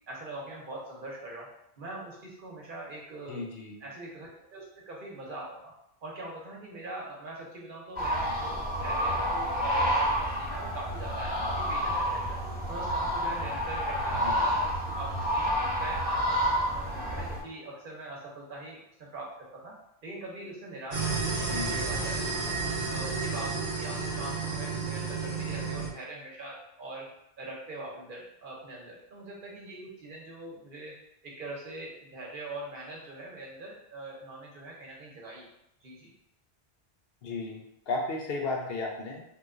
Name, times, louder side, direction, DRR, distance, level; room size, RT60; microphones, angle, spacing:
voice 1, 0.1-1.5 1.8-3.4 3.8-5.7 6.0-12.4 12.7-15.5 15.8-19.8 20.0-22.5 22.9-27.1 27.4-30.9 31.2-35.5 35.8-36.1, right 2 dB, 55° right, -2 dB, 0.9 m, -42 dB
voice 2, 3.3-3.8 14.1-14.5 21.5-21.8 37.2-39.2, left 3 dB, 70° left, 1 dB, 0.8 m, -34 dB
sound 1, 8.0-17.4, equal, 10° right, 0.7 m, -29 dB
sound 2, 20.9-25.9, right 4 dB, 80° right, 1.0 m, -31 dB
3.0 x 2.2 x 3.6 m, 0.79 s
omnidirectional pair, 1.1 m